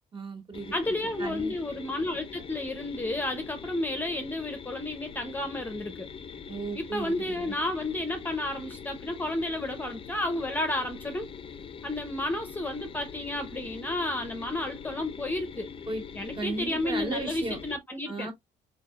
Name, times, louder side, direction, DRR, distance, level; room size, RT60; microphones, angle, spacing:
voice 1, 0.1-1.5 6.5-7.6 15.9-16.0 16.3-17.6 18.1-18.3, right 3 dB, 30° right, 2.1 m, -35 dB
sound 1, 0.5-17.8, left 6 dB, 30° left, 0.6 m, -43 dB
voice 2, 0.7-6.1 6.8-11.3 11.8-15.7 16.1-18.3, left 1 dB, 10° left, 0.9 m, -32 dB
4.6 x 4.6 x 2.4 m
cardioid pair, 110°, 17 cm